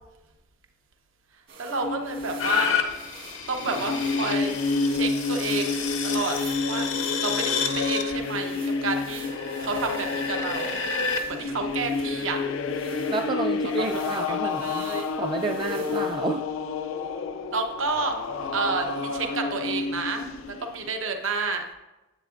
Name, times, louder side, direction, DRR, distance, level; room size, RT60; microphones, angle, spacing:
sound 1, 1.5-16.3, right 5 dB, 65° right, 1.8 m, -47 dB
voice 1, 1.6-2.8 3.5-4.5 4.9-6.9 7.2-9.3 9.6-10.8 11.3-12.4 13.6-15.0 17.5-21.6, right 3 dB, 85° right, 3 dB, 0.9 m, -30 dB
sound 2, 1.8-20.9, left 4 dB, 90° left, 0.4 m, -30 dB
sound 3, 2.4-11.2 11.8-11.9, left 6 dB, 70° left, 0.8 m, -30 dB
voice 2, 13.0-14.8 15.2-16.5, right 3 dB, 25° right, 3 dB, 0.3 m, -30 dB
9.7 x 7.9 x 2.5 m, 1.0 s
head